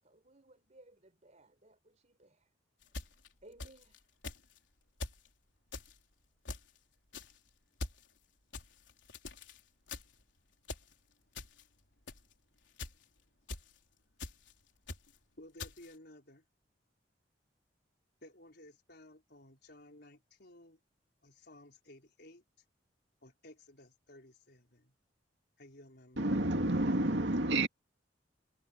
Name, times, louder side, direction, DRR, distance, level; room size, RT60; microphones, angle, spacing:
voice 1, 0.0-2.5 2.8-4.1, right 2 dB, 40° right, 4.3 m, -61 dB
sound 1, 2.8-4.0 4.2-4.6 5.0-5.3 5.7-6.0 6.5-6.8 7.1-7.4 7.8-8.1 8.5-9.6 9.9-10.2 10.6-10.9 11.4-11.6 12.1-12.3 12.8-13.0 13.5-13.8 14.2-14.5 14.9-15.2 15.6-15.9, left 3 dB, 85° left, 3.8 m, -44 dB
voice 2, 15.4-16.4 18.2-20.8 21.2-22.4 23.2-24.9 25.6-26.3, left 1 dB, 65° left, 4.4 m, -56 dB
voice 3, 26.2-27.7, right 1 dB, 70° right, 2.3 m, -29 dB
head